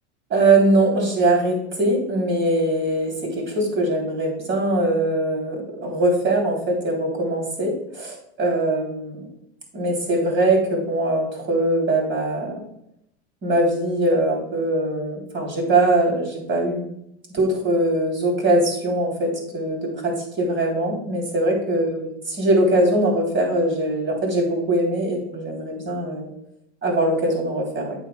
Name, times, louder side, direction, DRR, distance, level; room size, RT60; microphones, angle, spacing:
voice 1, 0.3-9.2 9.7-12.7 13.4-16.8 17.3-22.1 22.4-26.3 26.8-28.0, right 1 dB, 35° right, 1 dB, 3.2 m, -21 dB
9.0 x 7.9 x 2.3 m, 0.77 s
hypercardioid pair, 95°, 35 cm